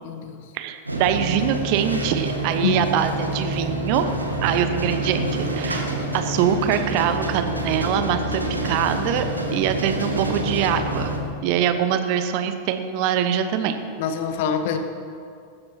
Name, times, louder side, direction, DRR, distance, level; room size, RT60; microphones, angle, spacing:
voice 1, 0.0-0.4 2.6-2.8 14.0-14.8, left 6 dB, 50° left, 7 dB, 1.2 m, -25 dB
voice 2, 0.5-4.1 4.4-5.9 6.1-11.2 11.4-13.8, right 9 dB, 45° right, 9 dB, 1.0 m, -23 dB
sound 1, 0.9-11.2, right 1 dB, 85° right, 1.6 m, -27 dB
19.0 x 15.0 x 2.9 m, 2.3 s
figure-of-eight pair, 90°, 0 cm